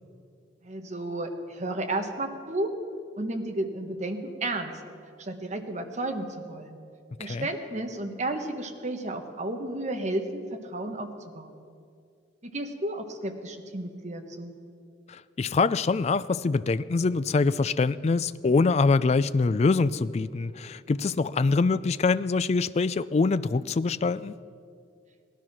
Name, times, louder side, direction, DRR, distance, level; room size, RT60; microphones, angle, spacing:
voice 1, 0.6-2.8 3.2-4.7 5.2-6.8 7.2-11.5 12.4-14.5, right 2 dB, 40° right, 4 dB, 1.3 m, -32 dB
voice 2, 15.1-24.4, left 4 dB, 35° left, 16 dB, 0.3 m, -24 dB
17.5 x 12.5 x 6.0 m, 2.4 s
head